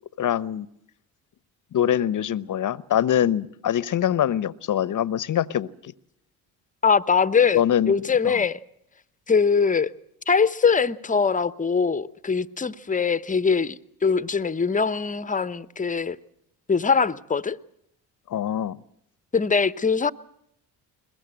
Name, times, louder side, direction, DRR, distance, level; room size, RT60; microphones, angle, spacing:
voice 1, 0.2-0.7 1.7-5.9 7.5-8.4 18.3-18.8, left 10 dB, 45° left, 20 dB, 0.9 m, -24 dB
voice 2, 6.8-8.6 9.3-9.9 10.3-16.2 16.7-17.6 19.3-20.1, left 5 dB, 15° left, 16 dB, 0.9 m, -22 dB
22.0 x 21.5 x 7.7 m, 0.75 s
hypercardioid pair, 60°, 45 cm